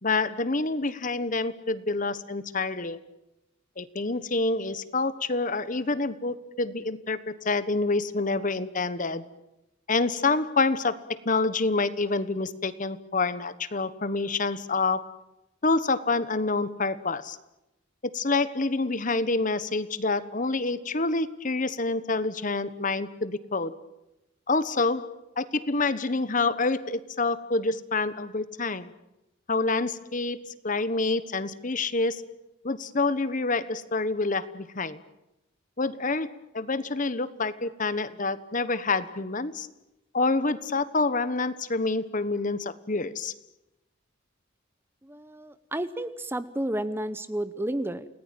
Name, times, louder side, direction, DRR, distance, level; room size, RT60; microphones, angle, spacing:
voice 1, 0.0-3.0 3.8-9.3 9.9-11.0 11.2-15.2 15.6-17.4 18.1-23.7 24.5-28.9 29.5-32.3 32.6-35.0 35.8-39.7 40.1-43.3, left 3 dB, 40° left, 14 dB, 1.2 m, -27 dB
voice 2, 45.0-48.1, right 1 dB, 10° right, 13 dB, 0.9 m, -31 dB
29.0 x 19.0 x 9.1 m, 0.95 s
head